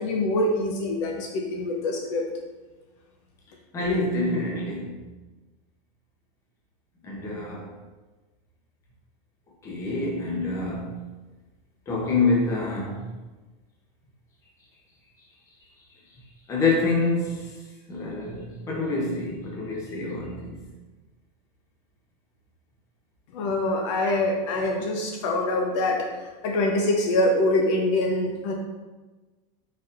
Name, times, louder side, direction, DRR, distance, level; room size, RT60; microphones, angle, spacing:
voice 1, 0.0-2.3 23.3-26.1 26.4-28.5, left 1 dB, 55° left, 1 dB, 0.6 m, -24 dB
voice 2, 3.7-5.1 7.0-7.7 9.6-11.0 11.9-13.1 16.5-17.5 17.9-20.6, left 3 dB, 15° left, -3 dB, 0.7 m, -26 dB
4.2 x 4.0 x 2.5 m, 1.2 s
supercardioid pair, 170°, 19 cm